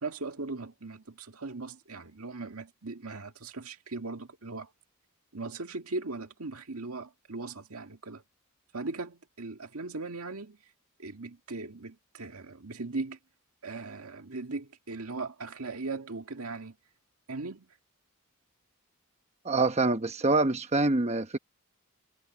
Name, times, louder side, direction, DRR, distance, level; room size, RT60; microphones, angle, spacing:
voice 1, 0.0-4.7 5.3-8.2 8.7-10.6 11.0-13.2 13.6-16.8 17.3-17.7, right 3 dB, 85° right, 1.9 m, -38 dB
voice 2, 19.4-21.4, right 3 dB, 30° right, 1.0 m, -25 dB
head